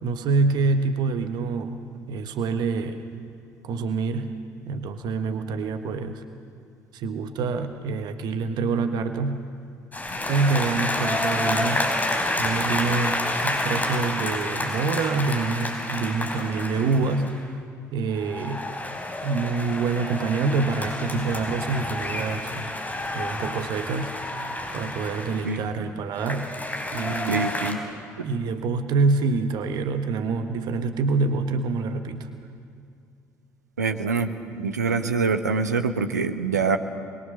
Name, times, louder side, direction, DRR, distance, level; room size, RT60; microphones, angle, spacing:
voice 1, 0.0-3.1 3.6-4.4 4.6-6.2 6.9-9.5 10.3-11.9 12.4-17.4 17.9-18.7 19.2-22.7 23.1-24.2 24.7-26.5 26.9-27.5 28.2-32.3, right 4 dB, 50° right, 8 dB, 1.4 m, -26 dB
sound 1, 9.9-17.4 18.1-25.6 26.2-27.7, left 1 dB, 20° left, 4.5 m, -29 dB
voice 2, 27.3-27.8 28.2-28.3 33.8-36.8, right 4 dB, 80° right, 8 dB, 1.0 m, -25 dB
28.5 x 22.0 x 6.8 m, 2.4 s
figure-of-eight pair, 50°, 9 cm